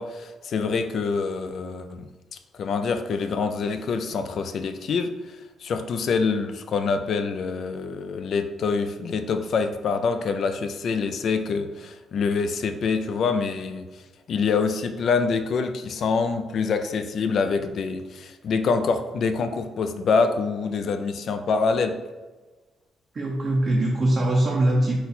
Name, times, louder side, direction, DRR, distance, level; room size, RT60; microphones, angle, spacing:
voice 1, 0.0-14.0 14.3-22.0, left 5 dB, 60° left, 8 dB, 0.3 m, -26 dB
voice 2, 23.1-25.0, right 1 dB, 40° right, -2 dB, 0.6 m, -22 dB
4.0 x 2.2 x 4.1 m, 1.2 s
cardioid pair, 90°, 0 cm